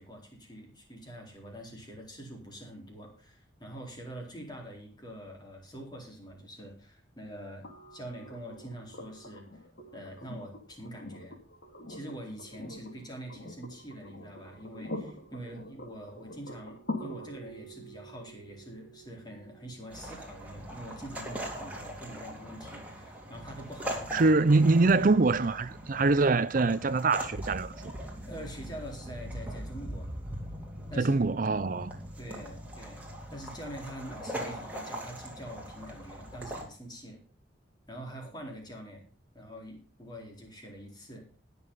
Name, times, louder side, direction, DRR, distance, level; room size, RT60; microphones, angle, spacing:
voice 1, 0.0-9.6 9.9-11.4 11.9-24.3 28.3-30.1 30.9-31.2 32.2-33.0 33.3-37.2 37.9-39.0 39.3-41.3, right 1 dB, 20° left, 4.4 m, -45 dB
sound 1, 7.6-21.6 23.3-23.4, left 1 dB, 70° left, 2.8 m, -45 dB
sound 2, 19.9-36.6, equal, 10° right, 3.3 m, -41 dB
voice 2, 24.1-27.7 31.0-31.9, right 3 dB, 45° right, 0.5 m, -24 dB
20.0 x 7.1 x 4.0 m
head